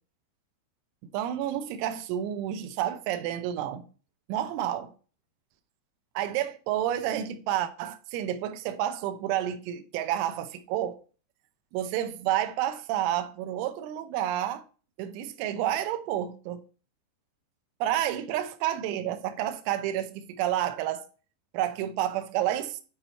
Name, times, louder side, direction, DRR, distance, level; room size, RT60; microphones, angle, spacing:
voice 1, 1.0-3.8 4.3-4.9 6.2-11.0 11.7-14.6 15.0-16.6 17.8-21.0 21.5-22.8, right 11 dB, 85° right, 3.2 m, -30 dB
9.7 x 4.2 x 4.4 m
omnidirectional pair, 5.5 m